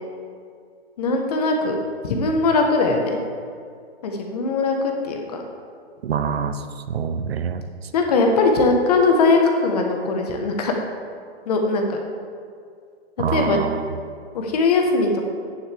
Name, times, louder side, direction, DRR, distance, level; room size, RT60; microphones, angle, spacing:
voice 1, 1.0-3.2 4.0-5.4 7.9-10.7 11.5-12.0 13.3-13.6 14.3-15.3, left 3 dB, 40° left, 2 dB, 1.3 m, -20 dB
voice 2, 6.0-7.6 13.2-13.9, right 6 dB, 70° right, 10 dB, 0.8 m, -25 dB
10.5 x 9.9 x 3.5 m, 2.2 s
hypercardioid pair, 165°, 32 cm